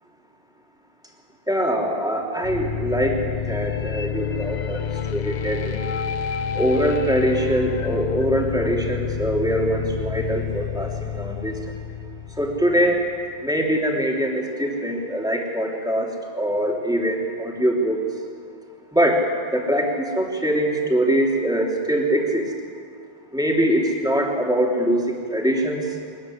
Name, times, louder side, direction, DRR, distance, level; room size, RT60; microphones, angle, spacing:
voice 1, 1.5-3.2 3.5-4.8 5.1-5.8 6.5-11.6 12.4-13.1 13.4-16.1 16.3-18.0 18.9-19.2 19.5-22.5 23.3-25.9, equal, 5° right, -1 dB, 3.0 m, -23 dB
sound 1, 2.4-13.3, left 7 dB, 50° left, 0.8 m, -29 dB
22.5 x 14.5 x 10.0 m, 2.2 s
omnidirectional pair, 1.1 m